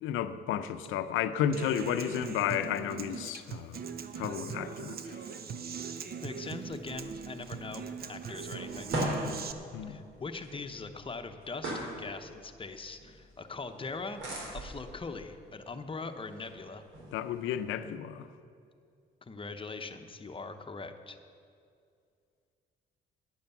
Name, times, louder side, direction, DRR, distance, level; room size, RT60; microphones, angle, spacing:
voice 1, 0.0-3.8 4.2-5.1 9.7-10.0 17.1-18.3, left 9 dB, 90° left, 12 dB, 0.6 m, -32 dB
Human voice / Acoustic guitar, 1.5-9.5, right 6 dB, 50° right, 0.8 m, -40 dB
voice 2, 6.2-8.9 9.9-14.2 14.5-16.8 19.2-21.2, left 3 dB, 25° left, 7 dB, 0.9 m, -41 dB
sound 1, 6.6-17.9, right 1 dB, 85° right, 3.4 m, -41 dB
10.5 x 9.9 x 7.0 m, 2.4 s
cardioid pair, 90°, 20 cm